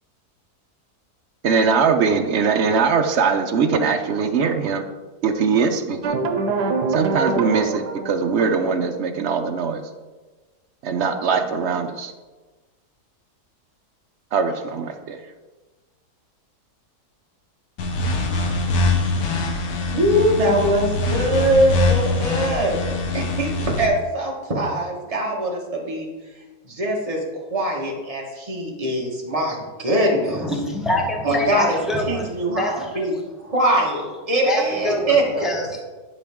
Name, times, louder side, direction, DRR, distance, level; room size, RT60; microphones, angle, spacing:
voice 1, 1.4-4.8 5.2-6.2 6.9-9.8 10.8-12.1 14.3-15.2, right 5 dB, 60° right, 6 dB, 0.7 m, -21 dB
sound 1, 6.0-8.8, right 4 dB, 85° right, 1.3 m, -24 dB
sound 2, 17.8-23.9, left 2 dB, 70° left, 1.4 m, -23 dB
voice 2, 19.9-22.9 23.1-26.1 26.6-30.4 31.2-31.8 32.1-33.1 33.5-35.4, right 1 dB, 25° right, -2 dB, 1.4 m, -22 dB
voice 3, 30.2-33.1 34.4-35.8, left 1 dB, ahead, 0 dB, 0.8 m, -26 dB
10.5 x 5.0 x 3.6 m, 1.3 s
omnidirectional pair, 1.7 m